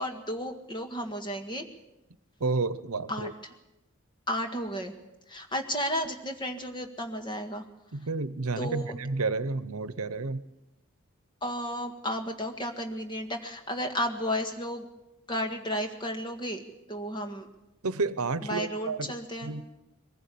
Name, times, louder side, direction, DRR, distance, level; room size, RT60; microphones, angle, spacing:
voice 1, 0.0-1.7 3.1-3.3 4.3-4.9 5.3-7.6 8.6-8.9 11.4-14.9 15.3-17.5 18.4-19.5, equal, 20° left, 5 dB, 1.7 m, -33 dB
voice 2, 2.4-3.3 7.9-10.4 17.8-19.1 19.4-19.7, right 3 dB, 85° right, 15 dB, 0.9 m, -30 dB
22.5 x 15.5 x 8.5 m, 0.97 s
head